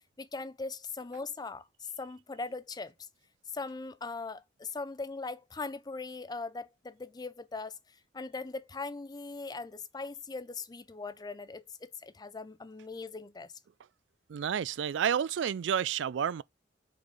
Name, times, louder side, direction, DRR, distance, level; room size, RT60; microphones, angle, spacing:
voice 1, 0.2-2.9 3.5-7.8 8.1-13.5, left 3 dB, 20° left, 0.5 m, -40 dB
voice 2, 14.3-16.4, right 8 dB, 80° right, 0.4 m, -30 dB
5.1 x 3.9 x 5.2 m
head